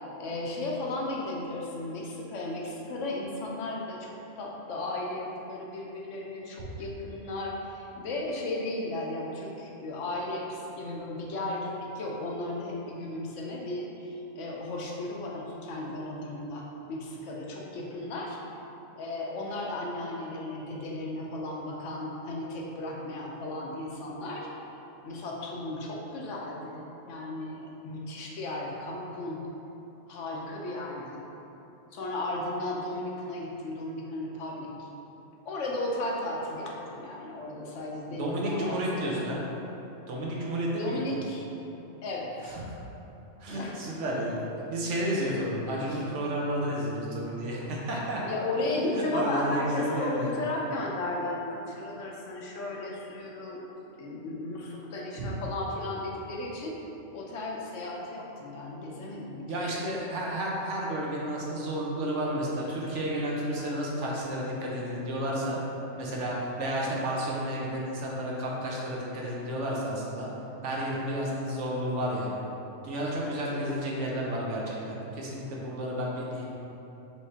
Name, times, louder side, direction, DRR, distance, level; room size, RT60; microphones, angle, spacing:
voice 1, 0.2-18.4 19.0-24.5 25.0-29.4 30.1-31.2 31.9-34.9 35.5-39.4 40.8-41.5 42.0-42.6 43.5-43.7 45.7-46.1 48.3-53.6 54.0-56.8 57.1-59.5 73.4-73.6, left 2 dB, 75° left, -2 dB, 1.0 m, -35 dB
voice 2, 38.1-39.4 40.1-41.0 43.4-44.4 44.7-48.2 48.8-50.3 55.1-55.3 59.5-65.6 65.9-70.3 70.6-72.4 72.8-76.5, right 1 dB, 70° right, -3 dB, 1.0 m, -31 dB
4.8 x 3.2 x 2.8 m, 3.0 s
omnidirectional pair, 1.3 m